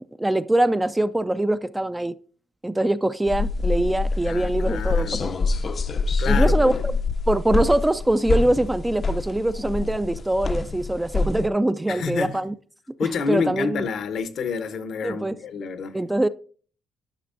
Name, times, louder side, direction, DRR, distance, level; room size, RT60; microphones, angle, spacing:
voice 1, 0.2-2.1 2.6-5.3 6.3-6.7 7.3-12.5 13.3-13.9 15.0-15.4 15.9-16.3, right 1 dB, 10° right, 0.3 m, -23 dB
sound 1, 3.3-11.5, left 3 dB, 45° left, 0.5 m, -25 dB
voice 2, 4.2-5.3 6.2-6.9 11.9-12.4 13.0-16.0, left 5 dB, 70° left, 0.8 m, -29 dB
10.0 x 5.7 x 2.5 m
cardioid pair, 90°, 0 cm